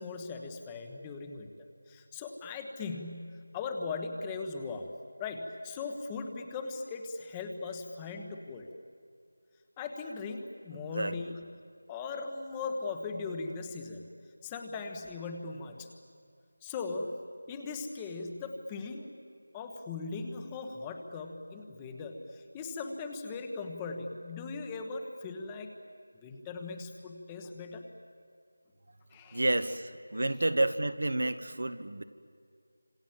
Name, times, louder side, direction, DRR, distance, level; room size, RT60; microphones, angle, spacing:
voice 1, 0.0-1.5 1.9-4.9 5.2-8.7 9.8-11.5 11.9-14.1 14.4-15.9 16.6-17.1 17.5-19.1 19.5-25.7 26.2-27.9 29.1-29.4, left 4 dB, 10° left, 5 dB, 1.3 m, -39 dB
voice 2, 10.9-11.3 29.3-32.0, right 2 dB, 70° right, 10 dB, 1.5 m, -30 dB
29.0 x 26.5 x 7.6 m, 2.3 s
figure-of-eight pair, 170°, 0 cm